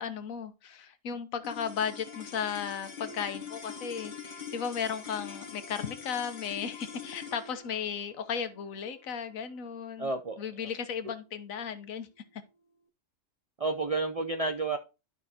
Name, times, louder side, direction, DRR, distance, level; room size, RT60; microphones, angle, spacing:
voice 1, 0.0-10.1 10.4-12.1 12.3-12.4, left 7 dB, 90° left, 1.3 m, -35 dB
sound 1, 1.4-11.9, left 6 dB, 40° left, 1.1 m, -45 dB
voice 2, 10.0-10.7 13.6-14.8, right 3 dB, 55° right, 0.4 m, -31 dB
12.0 x 5.2 x 2.8 m
omnidirectional pair, 1.4 m